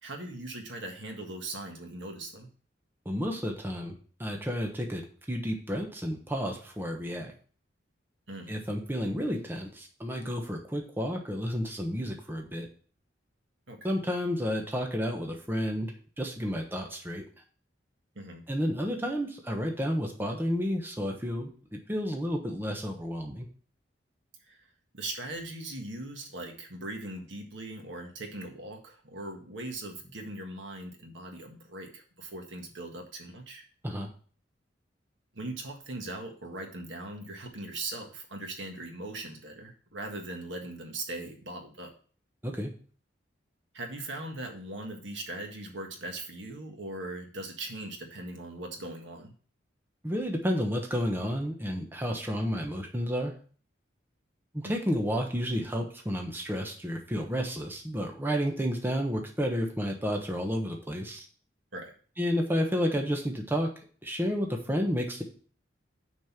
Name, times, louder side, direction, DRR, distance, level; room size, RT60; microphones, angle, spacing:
voice 1, 0.0-2.5 8.3-8.5 13.7-14.0 18.1-18.4 24.5-24.7 24.9-33.6 35.3-41.9 43.7-49.3 54.6-54.7 61.7-61.9, right 2 dB, 80° right, 3 dB, 1.7 m, -40 dB
voice 2, 3.0-3.9 4.2-5.0 5.3-7.3 8.5-12.7 13.8-17.2 18.5-23.5 33.8-34.1 42.4-42.7 50.0-53.3 54.5-61.3 62.2-63.7 64.0-65.2, equal, 10° right, 2 dB, 1.0 m, -31 dB
6.3 x 5.4 x 5.8 m, 0.43 s
head